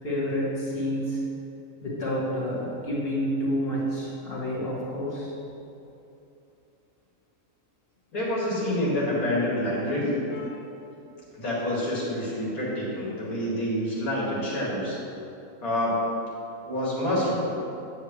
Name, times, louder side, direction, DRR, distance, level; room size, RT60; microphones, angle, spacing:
voice 1, 0.0-1.2 1.8-5.3 10.3-10.5, equal, 40° left, -8 dB, 2.4 m, -29 dB
voice 2, 8.1-10.1 11.3-15.0 15.6-16.0 16.6-17.5, left 1 dB, 80° left, -7 dB, 2.7 m, -27 dB
9.5 x 8.2 x 3.2 m, 2.8 s
omnidirectional pair, 1.5 m